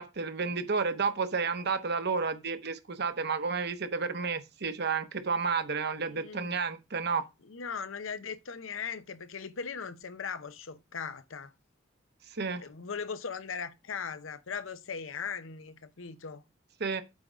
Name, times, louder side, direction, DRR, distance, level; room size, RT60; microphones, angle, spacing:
voice 1, 0.0-7.2 12.3-12.6 16.8-17.0, right 5 dB, 55° right, 1.0 m, -31 dB
voice 2, 6.1-6.6 7.4-11.5 12.6-16.4, left 6 dB, 70° left, 0.8 m, -39 dB
8.4 x 3.9 x 6.1 m
head